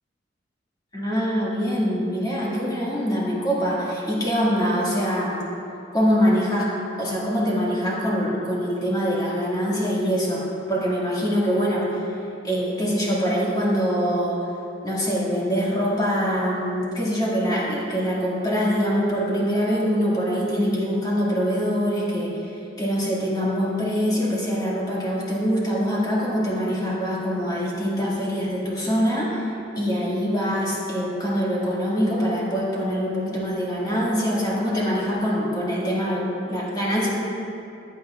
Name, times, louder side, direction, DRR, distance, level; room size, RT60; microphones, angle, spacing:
voice 1, 0.9-5.4 5.9-6.7 7.0-12.0 12.4-14.4 14.8-22.4 22.8-29.5 29.7-37.1, equal, 20° left, -6 dB, 2.1 m, -24 dB
15.0 x 9.3 x 2.5 m, 2.7 s
head